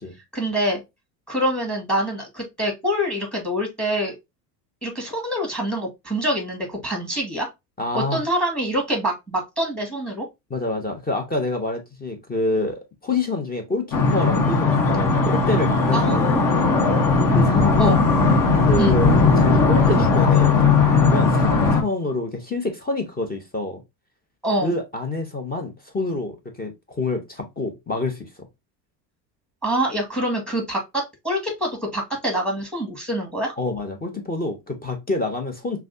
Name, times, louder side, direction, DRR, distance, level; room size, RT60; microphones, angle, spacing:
voice 1, 0.3-0.8 1.3-4.2 4.8-7.5 7.9-10.2 15.9-16.5 17.8-18.0 18.8-19.0 24.4-24.7 29.6-30.8 31.2-33.5, right 1 dB, ahead, 2.0 m, -25 dB
voice 2, 7.8-8.2 10.5-16.3 17.3-18.0 18.7-20.5 21.0-23.8 24.6-28.5 33.6-35.8, left 2 dB, 20° left, 1.1 m, -27 dB
sound 1, 13.9-21.8, left 4 dB, 40° left, 1.3 m, -18 dB
5.7 x 2.3 x 2.7 m
hypercardioid pair, 80°, 48 cm